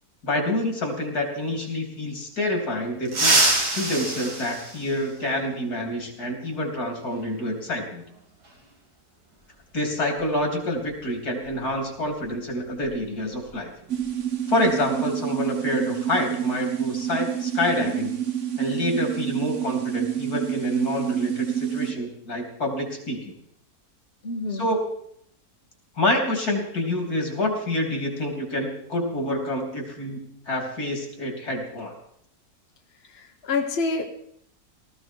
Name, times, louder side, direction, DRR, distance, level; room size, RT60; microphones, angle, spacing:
voice 1, 0.2-3.4 3.7-8.0 9.7-13.7 14.5-18.2 18.6-23.2 24.5-24.8 26.0-31.9, left 1 dB, 75° left, 3 dB, 3.8 m, -27 dB
sound 1, 3.1-5.5 7.1-7.2 8.4-8.5 10.2-10.3 10.7-10.9 11.4-13.6 13.8-14.1 14.5-14.9, right 2 dB, 85° right, 3.6 m, -26 dB
sound 2, 13.9-21.9, right 10 dB, 50° right, 1.7 m, -28 dB
voice 2, 24.2-24.6 33.1-34.1, left 4 dB, 45° left, 3 dB, 1.4 m, -27 dB
18.5 x 14.5 x 4.6 m, 0.69 s
omnidirectional pair, 1.6 m